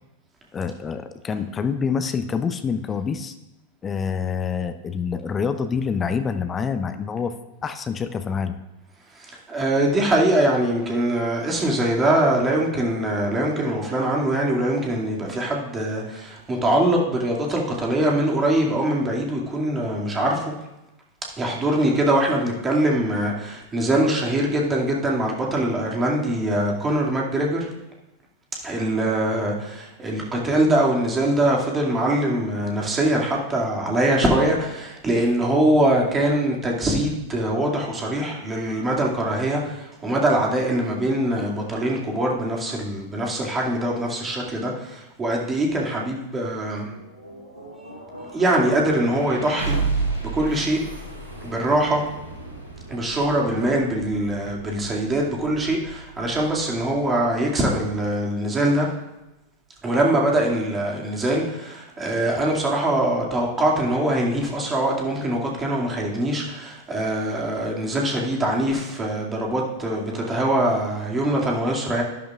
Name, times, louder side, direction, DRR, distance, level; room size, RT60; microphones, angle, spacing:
voice 1, 0.5-3.3 3.8-7.3 7.6-8.6, left 6 dB, 20° left, 10 dB, 0.6 m, -26 dB
voice 2, 9.2-20.5 21.4-27.7 28.6-46.9 48.3-49.8 50.3-50.8 51.4-52.0 52.9-58.9 59.8-72.0, right 1 dB, 20° right, -2 dB, 2.3 m, -23 dB
sound 1, 46.9-58.7, right 4 dB, 80° right, 2.9 m, -34 dB
12.0 x 10.5 x 2.5 m, 0.97 s
figure-of-eight pair, 90°, 0 cm